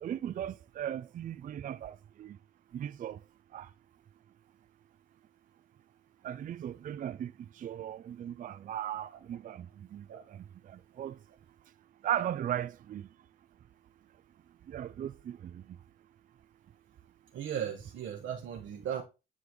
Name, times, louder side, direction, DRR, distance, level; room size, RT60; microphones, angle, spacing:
voice 1, 0.0-2.4 2.7-3.2 3.5-3.7 6.2-7.3 7.6-9.7 9.9-11.2 12.0-13.1 14.7-15.6, right 11 dB, 45° right, 0.4 m, -37 dB
voice 2, 17.3-19.0, right 9 dB, 70° right, 1.2 m, -37 dB
9.7 x 3.9 x 3.1 m
cardioid pair, 90°, 20 cm